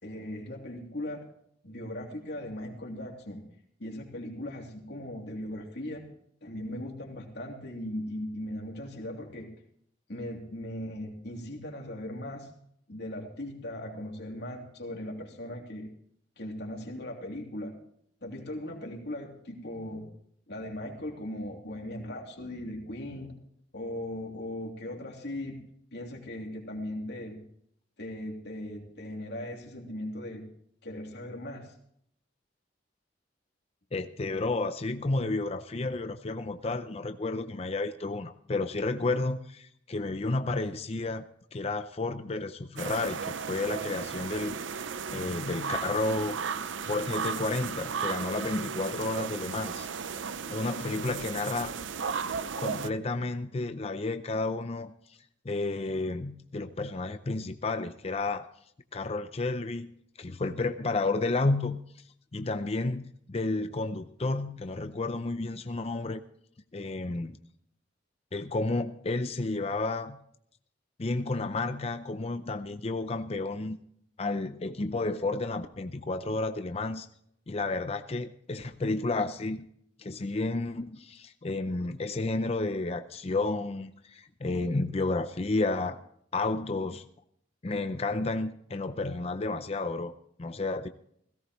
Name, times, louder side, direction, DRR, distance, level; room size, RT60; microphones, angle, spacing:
voice 1, 0.0-1.3 1.6-3.4 3.8-6.1 6.4-9.5 10.1-12.5 12.9-15.9 16.4-17.8 18.2-20.1 20.5-23.3 23.7-25.6 25.9-27.4 28.0-30.4 30.8-31.7, left 1 dB, 60° left, 0 dB, 3.1 m, -38 dB
voice 2, 33.9-41.2 41.5-46.4 46.8-49.9 50.5-51.7 52.6-55.2 55.4-58.5 58.9-61.8 62.3-66.2 66.7-67.4 68.3-70.2 71.0-73.8 74.2-77.1 77.5-79.7 80.0-86.0 86.3-87.0 87.6-90.1 90.4-90.9, left 2 dB, 35° left, 9 dB, 0.5 m, -31 dB
sound 1, 42.8-52.9, right 6 dB, 85° right, 0.6 m, -35 dB
17.0 x 17.0 x 3.1 m, 0.68 s
head